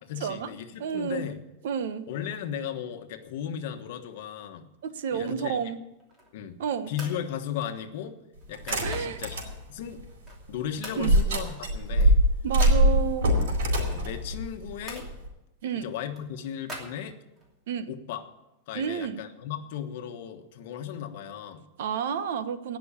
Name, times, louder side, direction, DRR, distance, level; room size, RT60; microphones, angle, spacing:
voice 1, 0.0-1.4 2.1-4.7 5.1-5.6 6.3-6.6 6.9-8.1 8.5-9.4 9.7-10.0 10.5-12.2 13.9-15.1 15.8-17.2 17.9-18.2 18.7-21.6, left 9 dB, 55° left, 7 dB, 1.3 m, -36 dB
voice 2, 0.8-1.2 1.6-2.1 4.8-5.8 6.6-6.9 8.8-9.2 11.0-11.1 12.4-13.3 15.6-15.9 17.7-17.9 18.7-19.2 21.8-22.8, right 7 dB, 65° right, 11 dB, 1.1 m, -30 dB
sound 1, 5.9-6.5 6.9-7.2 7.6-9.4 9.8-10.5 10.8-11.1 11.4-12.8 13.6-15.1 15.7-17.5, equal, 15° right, 2.8 m, -44 dB
sound 2, 8.5-9.5 10.0-10.1 11.0-15.3, right 1 dB, 90° right, 4.3 m, -23 dB
18.5 x 6.2 x 8.7 m, 0.95 s
supercardioid pair, 175°, 0 cm